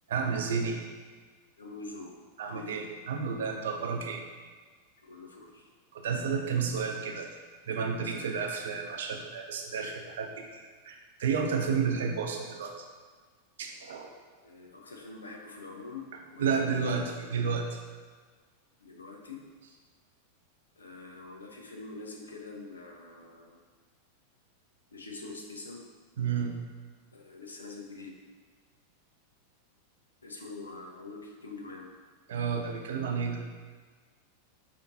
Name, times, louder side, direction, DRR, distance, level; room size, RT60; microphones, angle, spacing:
voice 1, 0.1-0.9 2.4-4.3 5.9-7.3 7.7-12.7 13.6-14.1 16.4-17.8 26.2-26.6 32.3-33.5, right 5 dB, 60° right, 3 dB, 0.4 m, -31 dB
voice 2, 1.6-2.1 2.5-2.8 5.1-5.7 8.0-8.4 14.4-16.8 18.8-19.4 20.8-23.6 24.9-25.8 27.1-28.1 30.2-31.9, left 3 dB, 75° left, 1 dB, 0.5 m, -45 dB
5.0 x 2.5 x 2.7 m, 1.5 s
figure-of-eight pair, 90°, 0 cm